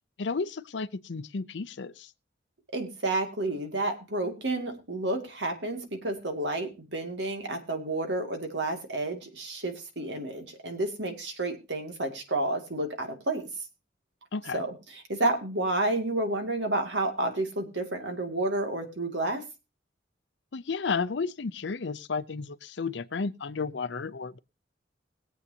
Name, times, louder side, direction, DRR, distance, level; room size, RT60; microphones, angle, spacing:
voice 1, 0.2-2.1 14.3-14.6 20.5-24.4, left 4 dB, 70° left, 0.6 m, -32 dB
voice 2, 2.7-13.4 14.5-19.4, right 2 dB, 70° right, 2.3 m, -30 dB
21.5 x 8.1 x 2.8 m
head